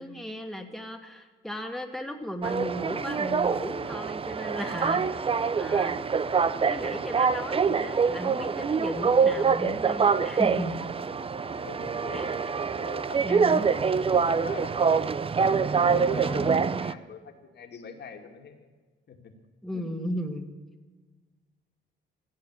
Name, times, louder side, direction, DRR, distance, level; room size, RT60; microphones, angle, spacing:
voice 1, 0.0-5.3 5.6-6.0 6.7-10.8 12.1-12.5 13.2-13.9 16.0-16.8 19.6-20.5, equal, ahead, 3 dB, 2.0 m, -36 dB
sound 1, 2.4-16.9, right 5 dB, 30° right, 0.6 m, -25 dB
voice 2, 11.6-15.1 15.8-18.7 19.1-19.3 19.7-19.8, left 6 dB, 55° left, 4 dB, 2.4 m, -43 dB
15.0 x 8.5 x 9.7 m, 1.3 s
cardioid pair, 90°, 20 cm